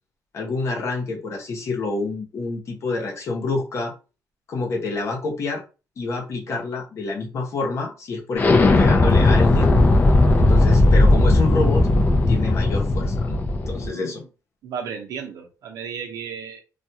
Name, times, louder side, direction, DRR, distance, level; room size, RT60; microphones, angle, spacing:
voice 1, 0.3-3.9 4.5-5.6 6.0-9.7 10.4-11.9 12.3-13.4 13.7-14.2, left 3 dB, 45° left, 0.9 m, -27 dB
Explosion, 8.4-13.9, left 2 dB, 25° left, 0.5 m, -16 dB
voice 2, 13.7-14.3 14.6-16.6, right 7 dB, 70° right, 0.8 m, -34 dB
2.4 x 2.3 x 2.8 m
cardioid pair, 140°, 6 cm